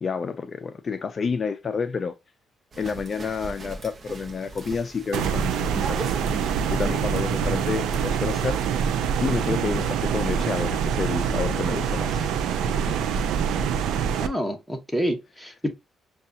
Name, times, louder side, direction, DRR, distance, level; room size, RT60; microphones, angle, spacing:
voice 1, 0.0-2.1 2.8-6.1 6.7-8.6 9.2-12.3, left 5 dB, 40° left, 0.4 m, -29 dB
sound 1, 2.7-7.2 7.9-8.0, right 3 dB, 45° right, 0.8 m, -38 dB
sound 2, 5.1-14.3, right 7 dB, 80° right, 0.4 m, -25 dB
voice 2, 14.2-15.7, equal, 5° right, 1.1 m, -28 dB
6.5 x 2.3 x 2.7 m
cardioid pair, 90°, 0 cm